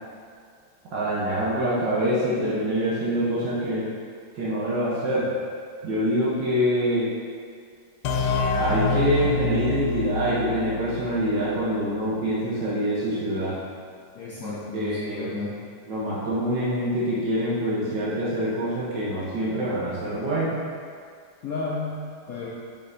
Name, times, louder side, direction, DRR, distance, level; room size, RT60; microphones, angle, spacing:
voice 1, 0.9-3.9 4.3-5.3 5.8-7.1 8.5-13.6 14.4-15.3 15.9-20.5, equal, 60° right, -8 dB, 1.5 m, -25 dB
sound 1, 8.0-11.6, left 3 dB, 90° left, 1.5 m, -27 dB
voice 2, 14.1-15.5 21.4-22.0 22.3-22.5, left 3 dB, 65° left, -6 dB, 0.9 m, -32 dB
6.9 x 5.4 x 2.6 m, 2.1 s
omnidirectional pair, 2.3 m